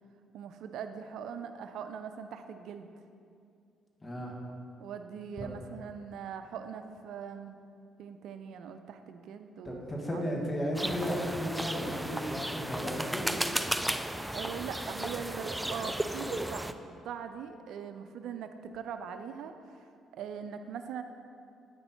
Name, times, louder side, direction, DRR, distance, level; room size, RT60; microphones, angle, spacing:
voice 1, 0.3-2.9 4.8-7.6 8.0-10.2 14.3-19.9 20.1-21.0, right 7 dB, 70° right, 8 dB, 0.4 m, -41 dB
voice 2, 4.0-4.3 5.4-5.5 9.6-13.3, equal, 25° left, -1 dB, 1.8 m, -34 dB
sound 1, 10.7-16.7, right 1 dB, 5° right, 0.4 m, -34 dB
8.9 x 5.4 x 4.4 m, 2.4 s
supercardioid pair, 65°, 0 cm